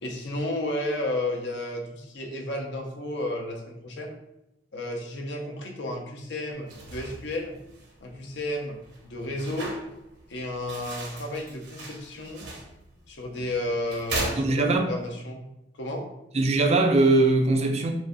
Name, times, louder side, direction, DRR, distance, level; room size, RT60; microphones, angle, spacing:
voice 1, 0.0-4.2 4.7-7.6 8.0-9.7 10.3-12.5 13.1-15.5 15.7-16.1, left 1 dB, 70° left, 0.8 m, -32 dB
sound 1, 6.5-15.1, right 2 dB, 65° right, 0.8 m, -39 dB
voice 2, 14.4-14.9 16.3-17.9, right 2 dB, 35° right, 0.4 m, -21 dB
6.1 x 2.2 x 2.6 m
head